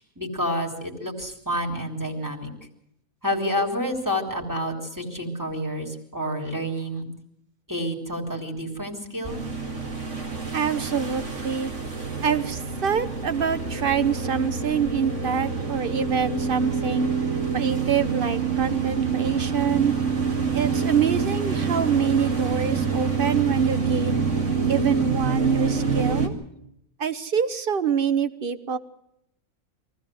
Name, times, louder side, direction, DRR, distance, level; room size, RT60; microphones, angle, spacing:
voice 1, 0.0-2.5 3.2-7.0 7.7-9.4, equal, 15° right, 1 dB, 3.3 m, -29 dB
sound 1, 9.2-26.3, right 5 dB, 65° right, 2.7 m, -26 dB
voice 2, 10.5-11.7 12.2-17.1 17.5-19.9 20.5-24.2 24.7-26.3 27.0-28.8, right 6 dB, 45° right, 12 dB, 1.2 m, -25 dB
23.5 x 15.0 x 7.7 m, 0.77 s
omnidirectional pair, 1.4 m